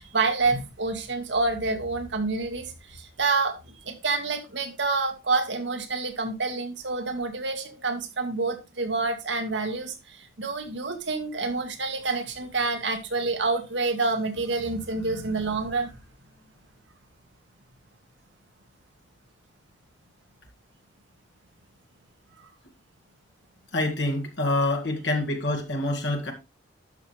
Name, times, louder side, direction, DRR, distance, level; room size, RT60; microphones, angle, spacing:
voice 1, 0.0-16.0, right 3 dB, 75° right, 1.7 m, -28 dB
voice 2, 23.7-26.3, left 2 dB, 70° left, 2.1 m, -26 dB
12.0 x 6.1 x 3.3 m
head